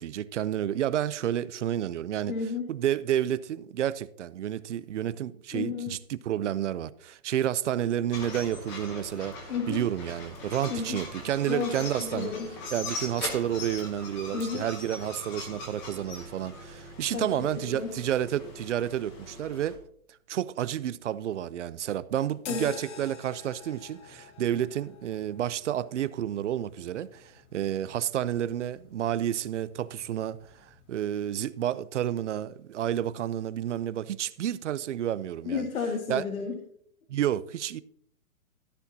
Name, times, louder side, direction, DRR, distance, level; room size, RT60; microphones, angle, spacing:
voice 1, 0.0-2.3 2.7-12.3 12.7-19.8 20.3-35.7 36.1-36.2 37.1-37.8, right 11 dB, 55° right, 0.6 m, -30 dB
voice 2, 2.3-2.7 5.5-5.9 9.5-9.8 10.7-11.0 11.5-11.7 12.0-12.5 14.3-14.7 17.1-17.3 17.6-17.9 22.5-22.7 35.4-36.6, left 5 dB, 75° left, 1.8 m, -32 dB
sound 1, 8.1-19.8, left 2 dB, 15° left, 0.9 m, -41 dB
sound 2, 22.4-30.9, left 6 dB, 55° left, 1.8 m, -49 dB
13.5 x 9.8 x 2.8 m
hypercardioid pair, 170°, 42 cm